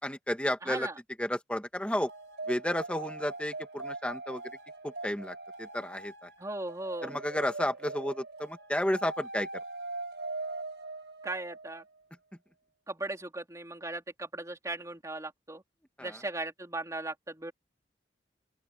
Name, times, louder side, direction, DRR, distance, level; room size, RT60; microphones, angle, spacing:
voice 1, 0.0-0.9 1.2-2.1 2.5-4.4 4.8-6.3 7.0-9.5 16.0-16.2, left 1 dB, 5° left, 2.0 m, -32 dB
voice 2, 0.6-1.0 6.4-7.1 11.2-11.8 12.9-15.6 16.0-17.5, right 2 dB, 20° right, 3.9 m, -37 dB
sound 1, 2.1-11.8, right 2 dB, 90° right, 6.1 m, -42 dB
open air
head